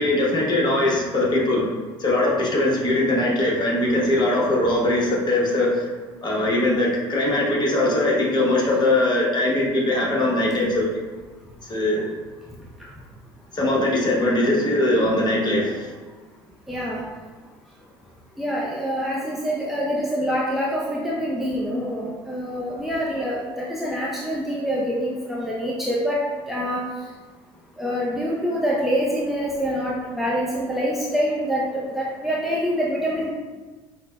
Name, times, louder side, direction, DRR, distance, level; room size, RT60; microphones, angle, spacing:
voice 1, 0.0-1.6 2.0-5.9 6.2-10.9 11.6-12.1 13.5-15.9, left 1 dB, 35° left, -3 dB, 1.0 m, -21 dB
voice 2, 16.7-17.0 18.4-26.2 26.5-26.9 27.8-31.7 31.9-33.3, equal, ahead, -5 dB, 0.5 m, -25 dB
5.5 x 2.1 x 2.2 m, 1.3 s
hypercardioid pair, 70°, 13 cm